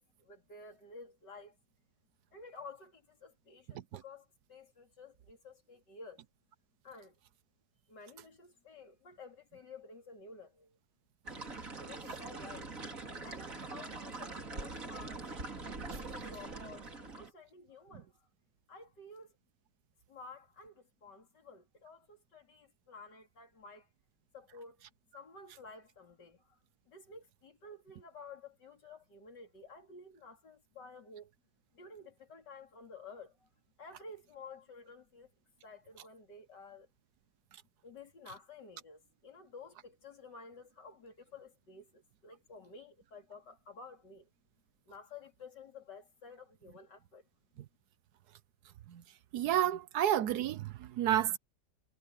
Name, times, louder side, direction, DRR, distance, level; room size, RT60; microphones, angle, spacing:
voice 1, 0.0-1.6 2.3-6.2 6.8-7.2 7.9-10.8 11.7-12.7 13.2-15.3 15.9-18.1 18.7-19.3 20.1-23.9 24.3-24.8 25.1-26.6 26.9-31.3 31.7-33.5 33.8-35.3 35.6-36.9 37.8-44.3 44.9-47.2, left 3 dB, 90° left, 3.9 m, -52 dB
sound 1, 11.2-17.3, right 3 dB, 50° right, 3.5 m, -43 dB
voice 2, 49.3-51.4, right 11 dB, 70° right, 1.3 m, -30 dB
omnidirectional pair, 1.8 m